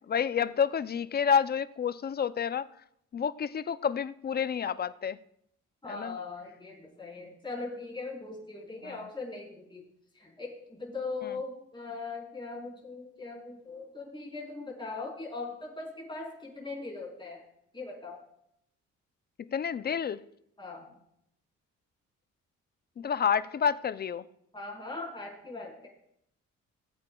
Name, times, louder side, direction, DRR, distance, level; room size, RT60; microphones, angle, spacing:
voice 1, 0.1-2.7 3.1-5.2 5.9-6.2 8.8-9.0 11.2-11.4 19.5-20.2 23.0-24.2, left 7 dB, 35° left, 16 dB, 0.4 m, -29 dB
voice 2, 5.8-9.9 10.2-17.4 17.7-18.2 20.6-20.9 24.5-25.9, left 3 dB, 15° left, -3 dB, 4.0 m, -40 dB
18.5 x 8.6 x 2.3 m, 0.75 s
cardioid pair, 90°, 30 cm